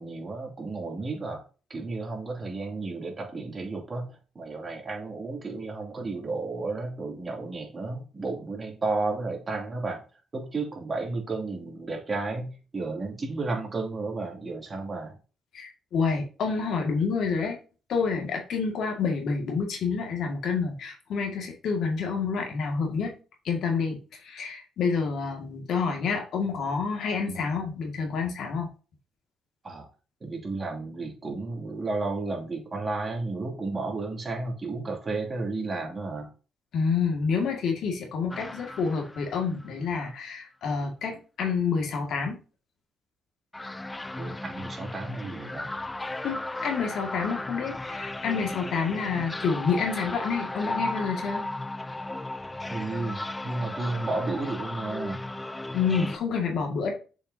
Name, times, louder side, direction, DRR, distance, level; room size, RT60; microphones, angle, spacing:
voice 1, 0.0-1.4 1.7-4.1 4.3-10.0 10.3-15.1 27.3-27.4 29.6-29.9 30.2-36.3 44.2-45.7 52.7-53.2 53.4-55.2, right 3 dB, 30° right, 0 dB, 2.7 m, -32 dB
voice 2, 15.5-17.6 17.9-23.2 23.4-28.7 36.7-42.4 46.2-51.4 55.7-56.9, left 5 dB, 70° left, 2 dB, 2.0 m, -28 dB
sound 1, 38.3-39.7 43.5-56.2, left 2 dB, 15° left, 0.4 m, -35 dB
7.0 x 5.7 x 2.8 m, 0.35 s
cardioid pair, 90°, 0 cm